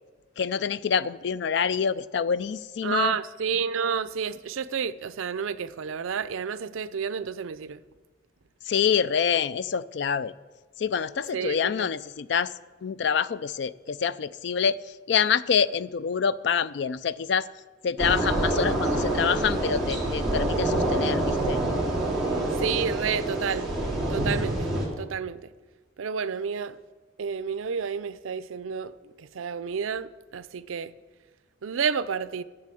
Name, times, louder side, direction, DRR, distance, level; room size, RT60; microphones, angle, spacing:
voice 1, 0.4-3.2 8.7-10.3 10.8-12.5 12.8-14.8 15.1-17.5 17.8-21.6, left 7 dB, 60° left, 0.3 m, -26 dB
voice 2, 2.8-7.8 11.3-11.9 22.6-23.7 24.1-24.7 25.0-25.5 26.0-26.8 27.2-28.9 29.2-30.9 31.6-32.4, right 6 dB, 80° right, 0.5 m, -30 dB
sound 1, 18.0-24.9, right 1 dB, ahead, 2.7 m, -26 dB
11.0 x 7.6 x 7.6 m
head